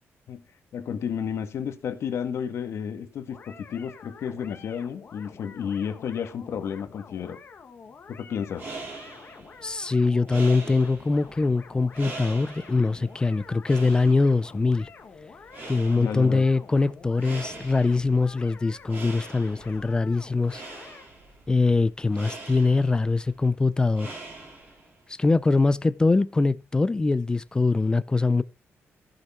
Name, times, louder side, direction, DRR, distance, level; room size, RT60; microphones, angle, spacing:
voice 1, 0.7-7.4 8.1-8.7 15.9-16.4, left 7 dB, 65° left, 1.9 m, -32 dB
sound 1, 3.3-21.1, left 5 dB, 40° left, 1.5 m, -48 dB
sound 2, 8.4-25.0, right 3 dB, 40° right, 4.4 m, -43 dB
voice 2, 9.6-14.9 15.7-20.6 21.5-24.2 25.1-28.4, left 3 dB, 15° left, 0.4 m, -23 dB
15.0 x 6.5 x 4.4 m
wide cardioid pair, 165°, 5 cm